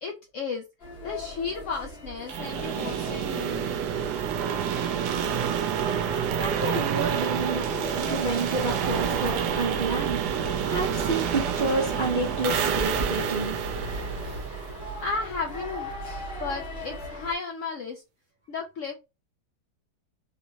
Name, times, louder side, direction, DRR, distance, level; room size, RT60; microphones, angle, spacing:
voice 1, 0.0-0.6 1.0-3.8 5.1-5.4 6.1-6.2 15.0-15.9 16.4-18.0 18.5-18.9, left 4 dB, 70° left, 0.7 m, -34 dB
sound 1, 0.8-17.3, equal, 35° left, 1.5 m, -40 dB
sound 2, 2.3-15.2, right 8 dB, 80° right, 1.1 m, -28 dB
voice 2, 6.0-7.7 7.9-13.6, right 2 dB, 50° right, 0.5 m, -29 dB
sound 3, 8.5-14.4, equal, 90° left, 1.4 m, -38 dB
3.3 x 2.8 x 2.7 m
omnidirectional pair, 1.8 m